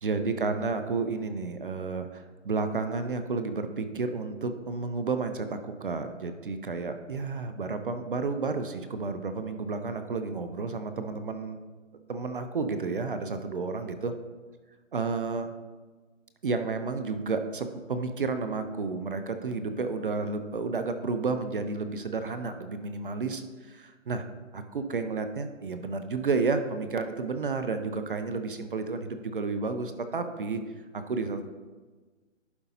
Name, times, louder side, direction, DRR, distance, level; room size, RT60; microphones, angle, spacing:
voice 1, 0.0-11.6 12.1-14.1 14.9-15.5 16.4-24.2 24.5-30.6 30.9-31.5, right 4 dB, 45° right, 8 dB, 0.5 m, -31 dB
11.0 x 5.1 x 2.8 m, 1.3 s
hypercardioid pair, 155°, 39 cm